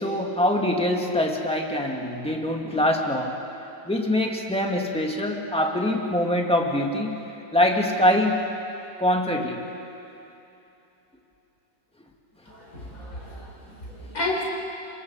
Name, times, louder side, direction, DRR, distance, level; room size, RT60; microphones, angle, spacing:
voice 1, 0.0-3.4 3.8-7.2 7.5-8.4 9.0-9.6, left 1 dB, 5° left, 0 dB, 2.1 m, -24 dB
voice 2, 12.5-14.4, left 2 dB, 45° left, -3 dB, 5.7 m, -32 dB
30.0 x 26.0 x 4.9 m, 2.8 s
omnidirectional pair, 2.0 m